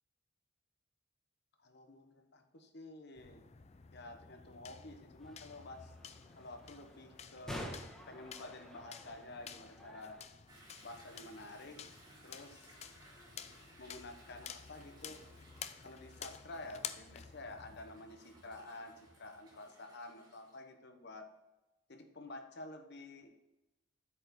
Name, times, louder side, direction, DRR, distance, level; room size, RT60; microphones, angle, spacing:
voice 1, 1.6-3.4 3.9-5.9 6.3-7.8 8.1-10.2 10.8-11.8 12.2-12.8 13.8-15.2 15.8-21.3 21.9-23.3, left 2 dB, 55° left, 6 dB, 1.0 m, -50 dB
sound 1, 3.2-17.9, left 7 dB, 30° left, 0.4 m, -51 dB
sound 2, 5.2-10.2, equal, 5° left, 1.6 m, -50 dB
Toilet flush / Drip / Trickle dribble, 10.5-20.6, right 1 dB, 20° right, 2.3 m, -61 dB
8.3 x 4.9 x 5.3 m, 1.0 s
head